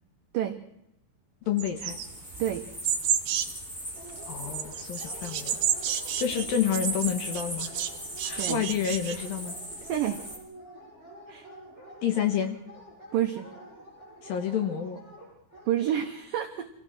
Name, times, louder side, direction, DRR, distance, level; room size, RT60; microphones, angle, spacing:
voice 1, 1.5-2.0 4.3-5.6 6.2-7.8 8.2-9.5 12.0-12.6 14.2-15.0, left 8 dB, 65° left, 6 dB, 2.5 m, -29 dB
sound 1, 1.6-3.6 4.1-7.9 8.2-9.2, right 9 dB, 65° right, 2.5 m, -31 dB
sound 2, 1.9-10.4, equal, 10° left, 4.5 m, -39 dB
Dog, 3.9-16.1, right 1 dB, 15° right, 8.1 m, -48 dB
voice 2, 13.1-13.5 15.7-16.7, right 11 dB, 90° right, 6 dB, 1.9 m, -28 dB
26.5 x 16.0 x 6.2 m, 0.84 s
omnidirectional pair, 5.6 m